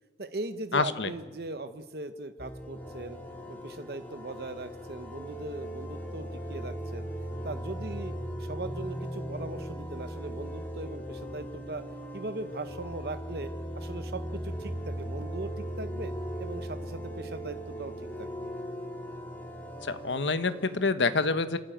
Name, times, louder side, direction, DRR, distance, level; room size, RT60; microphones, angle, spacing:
voice 1, 0.2-3.2 3.5-7.1 7.4-8.1 8.4-11.8 12.1-16.1 16.4-17.9 18.2-18.5, right 2 dB, 55° right, 9 dB, 0.9 m, -39 dB
voice 2, 0.7-1.1 19.9-21.6, left 4 dB, 85° left, 11 dB, 1.1 m, -27 dB
sound 1, 2.4-20.9, equal, 10° left, 2.5 m, -38 dB
27.5 x 13.0 x 9.2 m, 1.3 s
head